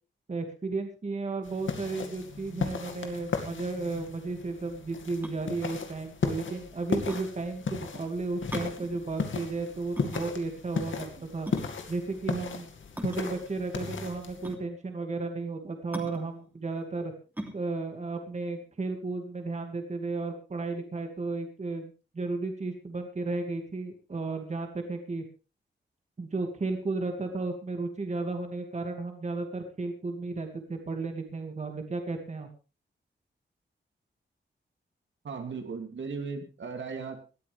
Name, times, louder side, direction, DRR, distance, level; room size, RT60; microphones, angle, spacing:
voice 1, 0.3-11.5 11.9-12.7 13.0-17.1 17.5-25.2 26.2-32.5, right 3 dB, 35° right, 5 dB, 2.3 m, -34 dB
sound 1, 1.5-14.5, left 5 dB, 80° left, 2.3 m, -36 dB
sound 2, 5.2-19.4, right 1 dB, 10° right, 3.1 m, -44 dB
voice 2, 35.2-37.2, right 5 dB, 75° right, 4 dB, 2.8 m, -37 dB
19.5 x 13.0 x 3.5 m, 0.34 s
wide cardioid pair, 145°, 19 cm